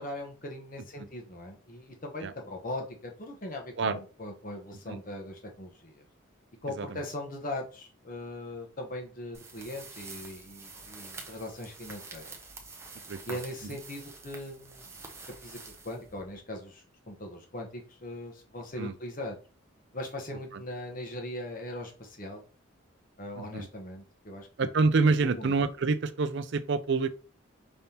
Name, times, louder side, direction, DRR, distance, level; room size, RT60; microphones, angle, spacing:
voice 1, 0.0-6.1 6.6-12.4 13.2-14.9 15.4-15.6 15.8-19.4 19.9-22.4 23.2-24.7 25.1-25.5, left 1 dB, 40° left, 1.1 m, -40 dB
sound 1, 9.3-16.5, right 3 dB, 15° right, 0.7 m, -47 dB
voice 2, 13.1-13.4 18.8-18.9 23.4-23.7 24.6-27.1, right 4 dB, 55° right, 0.4 m, -27 dB
5.3 x 3.5 x 2.8 m
head